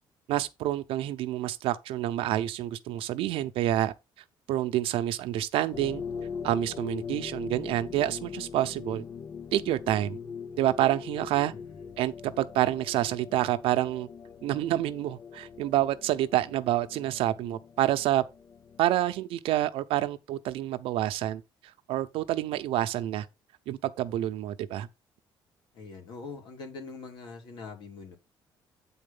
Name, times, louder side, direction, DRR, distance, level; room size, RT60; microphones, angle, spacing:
voice 1, 0.3-3.9 4.5-6.0 6.4-9.0 9.5-10.2 10.6-11.5 12.0-14.1 14.4-18.2 18.8-21.4 21.9-23.3 23.7-24.9, right 13 dB, 90° right, 0.8 m, -28 dB
sound 1, 5.7-18.9, left 6 dB, 35° left, 0.5 m, -41 dB
voice 2, 11.4-12.0 25.7-28.2, left 4 dB, 60° left, 2.8 m, -43 dB
8.8 x 4.3 x 5.4 m
cardioid pair, 165°, 9 cm